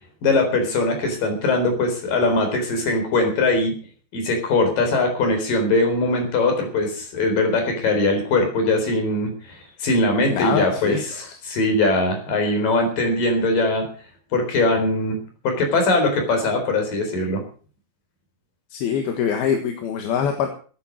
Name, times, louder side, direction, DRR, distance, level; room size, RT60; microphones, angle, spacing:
voice 1, 0.2-3.7 4.1-13.9 14.3-15.2 15.4-17.4, left 2 dB, 60° left, 4 dB, 5.7 m, -21 dB
voice 2, 10.3-11.4 18.7-20.5, left 7 dB, 80° left, 5 dB, 3.4 m, -24 dB
17.0 x 9.6 x 6.2 m, 0.40 s
omnidirectional pair, 4.4 m